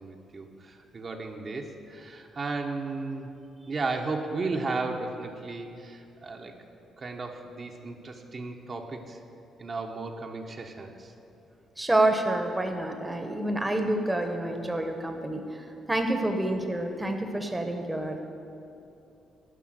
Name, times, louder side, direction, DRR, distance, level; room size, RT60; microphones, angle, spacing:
voice 1, 0.0-3.3 3.7-6.5 7.0-9.2 9.6-11.1, right 3 dB, 40° right, 2 dB, 0.9 m, -34 dB
voice 2, 11.8-18.2, right 1 dB, 10° right, 4 dB, 1.0 m, -28 dB
11.5 x 5.6 x 7.7 m, 2.8 s
cardioid pair, 90°, 0 cm